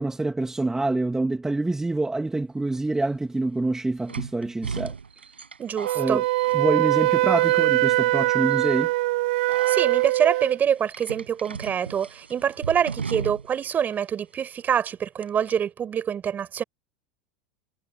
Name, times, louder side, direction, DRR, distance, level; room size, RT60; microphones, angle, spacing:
voice 1, 0.0-4.9 5.9-6.2 6.5-8.9, right 2 dB, 10° right, 2.8 m, -26 dB
sound 1, 2.7-2.8 4.1-7.1 7.4-7.9 8.5-8.7 9.5-10.1 10.9-13.7 13.9-14.0 15.2-15.5, right 5 dB, 85° right, 7.1 m, -36 dB
voice 2, 5.6-6.2 9.7-16.6, right 8 dB, 30° right, 6.9 m, -25 dB
Wind instrument woodwind instrument, 5.8-10.6, right 19 dB, 60° right, 1.1 m, -22 dB
figure-of-eight pair, 85°, 6 cm